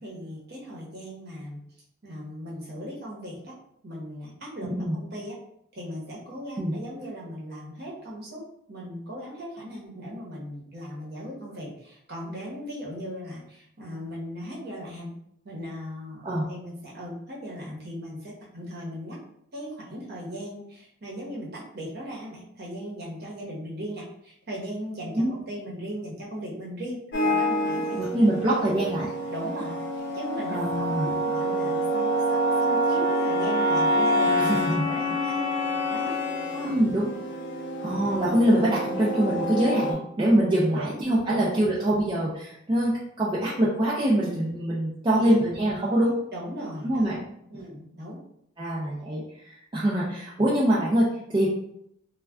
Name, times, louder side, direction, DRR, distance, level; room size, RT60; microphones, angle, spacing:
voice 1, 0.0-1.6 2.0-3.5 3.8-5.4 5.7-15.1 15.4-19.2 19.5-28.5 29.3-36.2 36.5-36.8 40.6-40.9 41.3-41.4 41.9-42.0 45.1-45.4 46.3-47.0 47.5-48.2, equal, 45° right, -4 dB, 0.8 m, -38 dB
voice 2, 4.6-4.9 6.6-6.7 16.2-16.4 25.1-25.3 27.9-29.1 30.5-31.2 34.6-34.9 36.6-37.1 37.8-46.2 46.8-47.2 48.6-49.2 49.5-51.5, right 1 dB, 20° right, -7 dB, 0.3 m, -24 dB
sound 1, 27.1-39.9, equal, 55° left, 0.5 m, -27 dB
2.2 x 2.2 x 3.4 m, 0.74 s
head